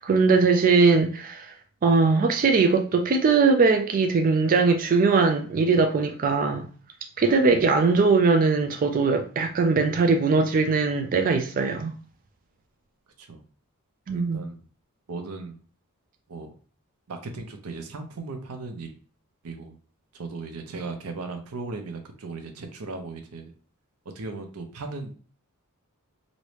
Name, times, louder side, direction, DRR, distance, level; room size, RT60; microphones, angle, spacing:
voice 1, 0.0-1.5 1.8-6.6 7.2-11.9 14.1-14.4, right 4 dB, 40° right, 0.3 m, -20 dB
voice 2, 14.1-14.6 15.1-15.6 16.3-16.5 17.1-18.9 19.4-19.8 20.1-23.5 24.1-25.1, right 3 dB, 85° right, 0.6 m, -37 dB
3.0 x 2.7 x 3.2 m
head